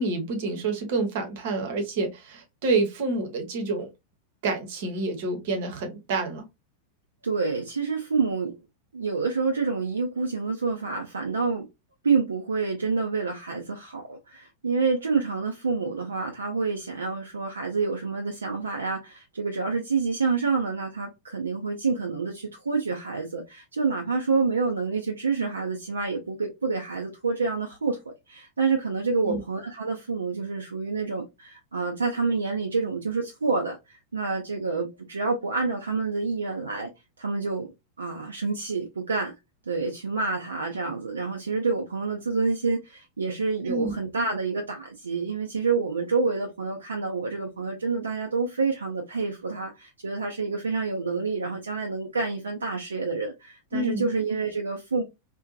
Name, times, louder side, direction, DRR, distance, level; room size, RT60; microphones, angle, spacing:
voice 1, 0.0-3.9 4.4-6.5 29.2-29.4 43.7-43.9 53.7-54.1, right 3 dB, 50° right, 0.8 m, -28 dB
voice 2, 7.2-8.6 8.9-11.7 12.0-36.9 37.2-37.7 38.0-39.3 39.7-55.0, right 4 dB, 75° right, 0.4 m, -28 dB
2.6 x 2.1 x 2.3 m
figure-of-eight pair, 90°, 0 cm